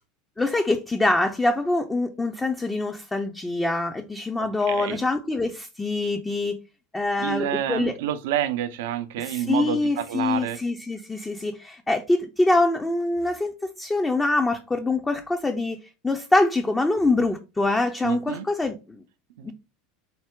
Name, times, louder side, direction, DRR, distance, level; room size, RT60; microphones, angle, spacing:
voice 1, 0.4-6.6 6.9-8.0 9.2-13.5 13.8-19.0 19.4-19.5, left 2 dB, 15° left, 0.5 m, -24 dB
voice 2, 4.7-5.0 7.2-10.6 18.0-18.5 19.4-19.5, right 11 dB, 65° right, 0.4 m, -28 dB
4.6 x 2.1 x 3.6 m
figure-of-eight pair, 75°, 0 cm